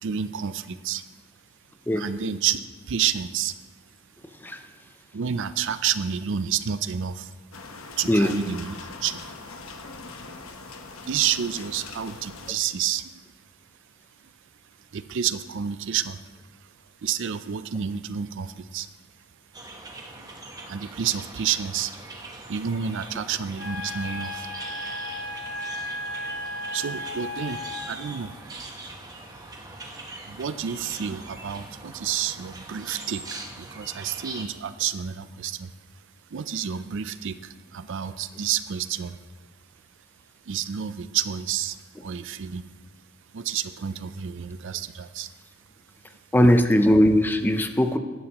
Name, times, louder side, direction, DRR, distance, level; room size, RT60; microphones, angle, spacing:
voice 1, 0.0-1.0 2.0-3.6 5.1-7.3 8.0-9.2 11.0-13.2 14.9-16.2 16.6-16.7 17.0-18.9 20.2-20.3 20.7-21.9 22.5-24.5 26.7-28.3 30.2-35.7 36.3-39.2 40.5-42.6 43.3-45.3, right 8 dB, 60° right, 13 dB, 0.5 m, -29 dB
sound 1, 7.5-12.5, left 3 dB, 80° left, 1.0 m, -41 dB
sound 2, 19.5-34.4, right 2 dB, 20° right, 1.1 m, -41 dB
Wind instrument woodwind instrument, 23.6-28.1, left 1 dB, 55° left, 1.5 m, -35 dB
voice 2, 46.3-48.0, equal, 10° left, 7 dB, 0.6 m, -19 dB
15.0 x 11.0 x 3.0 m, 1.4 s
head